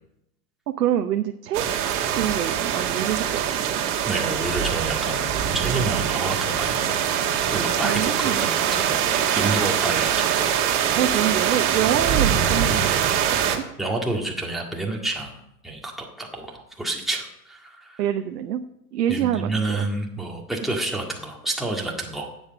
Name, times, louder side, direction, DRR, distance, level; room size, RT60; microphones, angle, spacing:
voice 1, 0.7-1.6 2.2-3.8 7.8-8.5 11.0-13.6 18.0-18.6 18.9-19.9, right 10 dB, 85° right, 6 dB, 0.9 m, -26 dB
sound 1, 1.5-13.6, right 9 dB, 45° right, 1.9 m, -23 dB
voice 2, 4.0-7.1 7.5-10.4 13.8-15.4 15.6-18.0 19.1-22.3, right 2 dB, ahead, -1 dB, 1.9 m, -29 dB
9.7 x 8.2 x 7.6 m, 0.82 s
hypercardioid pair, 125°, 46 cm